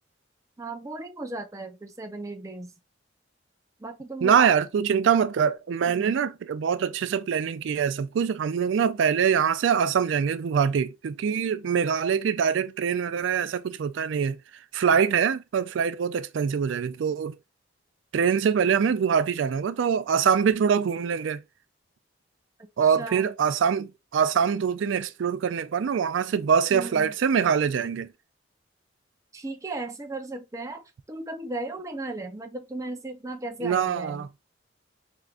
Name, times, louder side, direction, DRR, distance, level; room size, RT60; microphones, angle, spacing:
voice 1, 0.6-2.7 3.8-4.6 5.9-6.2 23.0-23.3 26.7-27.1 29.3-34.3, right 2 dB, 15° right, 0.6 m, -36 dB
voice 2, 4.2-14.4 14.7-17.4 18.1-21.4 22.8-28.1 33.6-34.3, right 7 dB, 85° right, 0.4 m, -24 dB
4.4 x 3.7 x 2.4 m
head